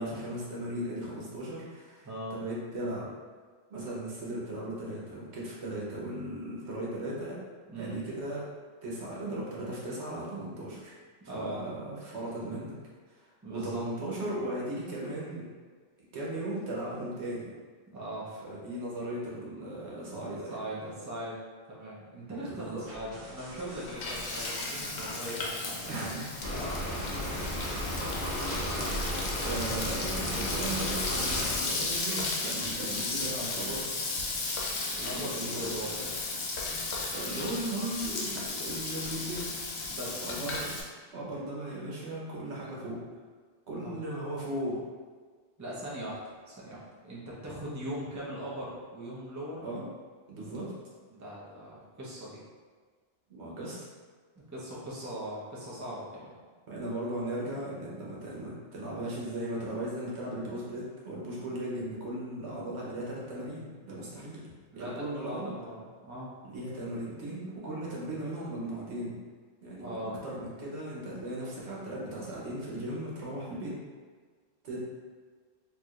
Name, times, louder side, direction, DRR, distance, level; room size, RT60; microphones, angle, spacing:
voice 1, 0.0-3.1 3.7-7.4 7.8-8.5 8.8-11.0 11.3-12.8 13.1-15.5 16.1-17.5 18.4-20.6 22.3-22.8 25.9-26.3 29.4-33.9 35.1-35.6 37.1-39.5 40.2-40.7 41.1-43.0 43.7-44.8 49.6-49.8 50.3-50.7 53.3-53.8 56.7-64.4 64.7-65.5 66.4-69.2 69.6-70.0 70.2-73.7 74.6-74.9, right 1 dB, 80° right, -5 dB, 1.2 m, -37 dB
voice 2, 2.0-2.4 7.7-8.0 11.3-11.7 13.4-13.8 17.9-18.3 20.5-21.4 21.7-26.0 26.5-27.0 27.5-28.0 29.7-29.8 30.2-30.5 34.9-36.1 39.9-40.3 43.8-44.0 45.6-49.6 51.1-52.4 54.5-56.3 64.7-66.3 69.8-70.2, right 1 dB, 20° right, -7 dB, 0.7 m, -40 dB
sound 1, 22.8-31.4, right 1 dB, 50° right, 1.0 m, -44 dB
Frying (food), 23.5-40.8, left 3 dB, 80° left, 0.9 m, -35 dB
sound 2, 26.4-31.6, equal, 45° left, 1.0 m, -34 dB
4.6 x 2.7 x 2.4 m, 1.5 s
omnidirectional pair, 1.1 m